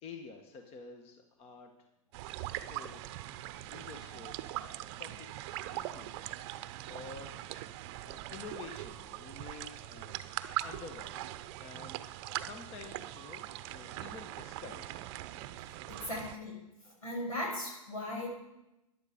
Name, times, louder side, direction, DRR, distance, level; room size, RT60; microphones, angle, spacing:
voice 1, 0.0-1.7 2.4-3.2 3.7-4.3 4.8-6.2 6.8-7.4 8.1-10.2 10.6-11.3 11.6-15.0, left 5 dB, 35° left, 5 dB, 1.5 m, -50 dB
sound 1, 2.1-16.4, right 14 dB, 50° right, 0.7 m, -41 dB
voice 2, 15.7-16.6 16.8-18.3, left 1 dB, 85° left, -1 dB, 6.2 m, -38 dB
13.5 x 11.0 x 5.2 m, 0.93 s
hypercardioid pair, 105°, 18 cm